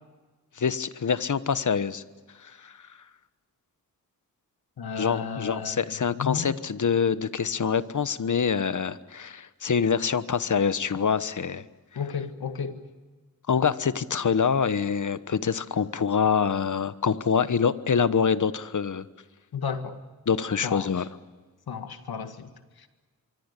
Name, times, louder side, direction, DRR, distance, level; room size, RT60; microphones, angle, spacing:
voice 1, 0.5-3.1 5.0-11.7 11.9-12.0 13.5-19.1 20.2-21.0, left 6 dB, 55° left, 14 dB, 1.2 m, -25 dB
voice 2, 4.8-5.8 6.2-6.5 12.0-12.8 19.5-20.0 20.6-20.9 21.7-22.5 22.8-22.9, left 6 dB, 80° left, 8 dB, 2.0 m, -32 dB
25.0 x 24.0 x 8.4 m, 1.3 s
cardioid pair, 50°, 37 cm